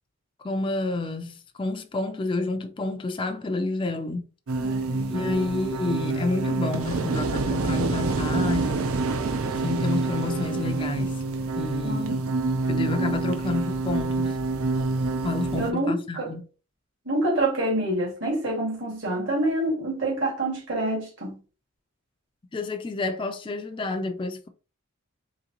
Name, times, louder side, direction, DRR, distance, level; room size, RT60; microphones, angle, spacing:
voice 1, 0.4-4.3 5.1-8.9 9.6-11.1 11.6-12.2 12.7-14.4 15.2-16.4 22.5-24.5, left 2 dB, 20° left, 0.4 m, -29 dB
sound 1, 4.5-15.7, right 3 dB, 70° right, 0.5 m, -27 dB
voice 2, 4.6-5.3 11.8-12.2 15.5-16.3 17.1-21.4, right 1 dB, 55° right, 2.0 m, -27 dB
3.8 x 3.6 x 2.8 m
head